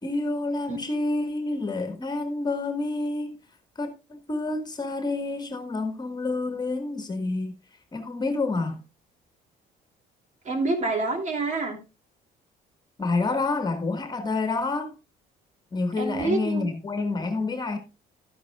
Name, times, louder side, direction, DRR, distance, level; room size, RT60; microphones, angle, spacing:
voice 1, 0.0-3.4 3.7-7.5 7.9-8.8 13.0-14.9 15.7-17.8, left 3 dB, 25° left, 1.6 m, -28 dB
voice 2, 10.4-11.8 16.0-16.7, right 3 dB, 45° right, 2.8 m, -27 dB
12.5 x 10.0 x 2.3 m
cardioid pair, 110°, 17 cm